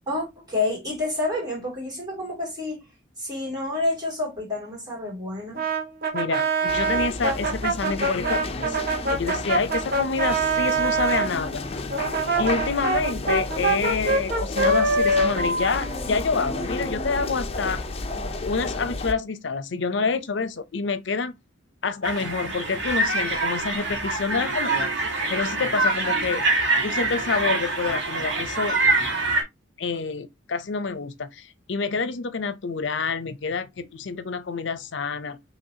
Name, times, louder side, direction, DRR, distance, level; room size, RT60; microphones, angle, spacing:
voice 1, 0.1-2.8 3.2-5.7, left 2 dB, 20° right, 2.6 m, -29 dB
Brass instrument, 5.5-11.3 11.9-16.7, right 3 dB, 50° right, 1.5 m, -25 dB
voice 2, 6.1-8.8 9.1-11.6 12.4-17.8 18.4-21.4 21.8-24.9 25.3-26.4 26.8-28.8 29.8-35.5, left 4 dB, 70° left, 0.6 m, -27 dB
sound 1, 6.7-19.1, left 2 dB, 30° left, 0.6 m, -32 dB
sound 2, 22.0-29.4, right 2 dB, 70° right, 1.7 m, -25 dB
5.8 x 3.1 x 2.8 m
head